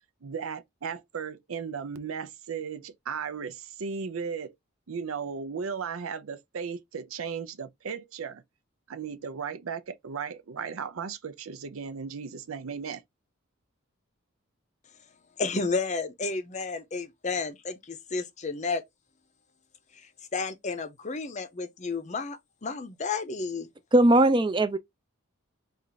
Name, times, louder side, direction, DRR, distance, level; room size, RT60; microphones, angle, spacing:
voice 1, 0.2-4.5 4.9-8.4 8.9-13.0, right 6 dB, 80° right, 0.6 m, -36 dB
voice 2, 15.4-18.8 20.3-23.7, left 4 dB, 35° left, 0.6 m, -32 dB
voice 3, 23.9-24.8, right 1 dB, 20° right, 0.4 m, -19 dB
4.3 x 2.5 x 3.9 m
head